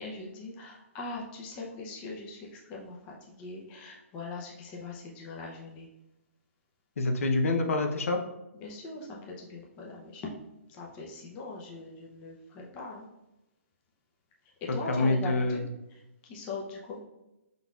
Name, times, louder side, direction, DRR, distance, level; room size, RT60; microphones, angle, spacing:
voice 1, 0.0-5.9 8.5-10.2 10.7-13.1 14.7-15.6 15.9-17.0, left 3 dB, 15° left, -2 dB, 0.6 m, -41 dB
voice 2, 7.0-8.2 14.7-15.7, left 2 dB, 65° left, 4 dB, 0.7 m, -26 dB
5.2 x 3.9 x 2.4 m, 0.94 s
hypercardioid pair, 165°, 8 cm